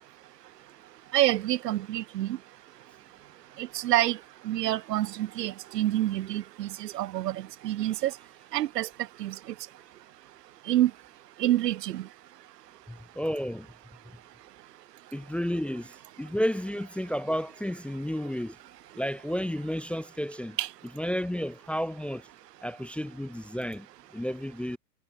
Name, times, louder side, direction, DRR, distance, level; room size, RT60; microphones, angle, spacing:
voice 1, 1.1-2.4 3.6-4.2 4.4-8.1 8.5-8.9 9.2-9.3 10.7-10.9 11.4-12.1 20.6-20.7, right 14 dB, 75° right, 1.5 m, -27 dB
voice 2, 12.9-13.7 15.1-15.9 16.2-18.6 19.0-20.6 21.0-22.2 22.6-23.9 24.1-24.8, equal, ahead, 1.0 m, -31 dB
hypercardioid pair, 120°, 49 cm